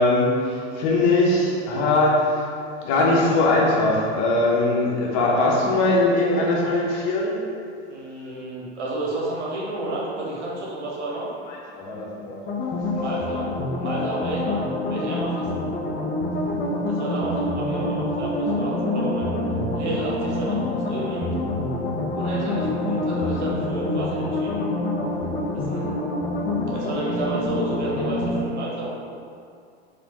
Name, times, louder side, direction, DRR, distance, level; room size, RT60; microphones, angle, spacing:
voice 1, 0.0-2.5 2.8-7.4 11.5-12.7 25.1-25.3, left 2 dB, 55° left, -2 dB, 0.9 m, -21 dB
voice 2, 7.9-11.3 12.9-13.5 13.8-15.5 16.9-19.4 19.7-21.3 22.1-24.7 25.5-25.9 26.7-29.0, right 2 dB, 85° right, -4 dB, 1.0 m, -31 dB
sound 1, 12.5-28.4, left 2 dB, 30° left, 0.5 m, -26 dB
4.3 x 2.4 x 2.9 m, 2.4 s
hypercardioid pair, 90°, 34 cm